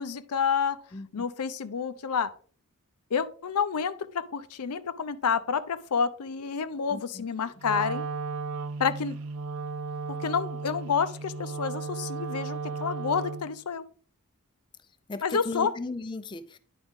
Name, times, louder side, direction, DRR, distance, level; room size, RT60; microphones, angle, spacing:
voice 1, 0.0-0.8 1.1-2.3 3.1-8.1 8.8-9.2 10.1-13.8 15.2-15.7, left 6 dB, 85° left, 0.6 m, -29 dB
voice 2, 0.9-1.3 6.9-7.3 15.1-16.6, left 3 dB, 20° left, 0.4 m, -36 dB
Wind instrument woodwind instrument, 7.6-13.6, right 4 dB, 65° right, 0.4 m, -35 dB
9.6 x 4.9 x 3.6 m
head